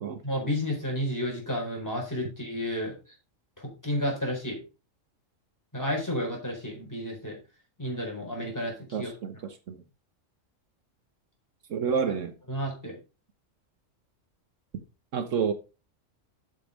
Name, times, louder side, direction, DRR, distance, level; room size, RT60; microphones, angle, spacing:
voice 1, 0.2-3.0 3.6-4.6 5.7-7.4 7.8-9.1 12.5-13.0, equal, 15° left, 4.3 m, -31 dB
voice 2, 8.9-9.3 9.7-9.8 11.7-12.3 15.1-15.5, right 6 dB, 70° right, 1.3 m, -28 dB
7.9 x 7.0 x 5.0 m
omnidirectional pair, 1.3 m